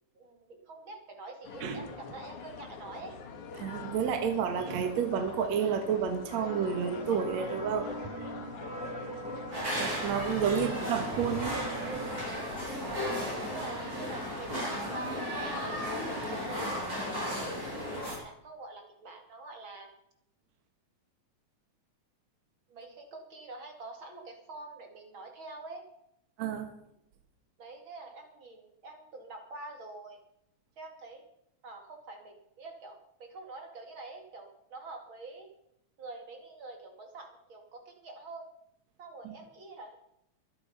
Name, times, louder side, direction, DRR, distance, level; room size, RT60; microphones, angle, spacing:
voice 1, 0.1-3.2 8.9-9.3 10.5-10.9 13.3-15.9 16.2-17.5 17.9-19.9 22.7-25.8 27.6-30.2 30.8-31.2 31.6-35.5 36.0-38.4 39.0-40.2, right 3 dB, 45° right, 3 dB, 3.0 m, -46 dB
sound 1, 1.4-18.1, left 5 dB, 85° left, 3.4 m, -44 dB
voice 2, 3.6-7.9 8.2-8.3 9.8-12.0 26.4-26.7 39.2-39.3, right 7 dB, 70° right, 6 dB, 2.6 m, -30 dB
sound 2, 6.3-12.3, right 2 dB, ahead, 3.0 m, -42 dB
sound 3, 9.5-18.2, equal, 30° right, 5.8 m, -35 dB
22.5 x 10.0 x 5.6 m, 0.77 s
omnidirectional pair, 3.3 m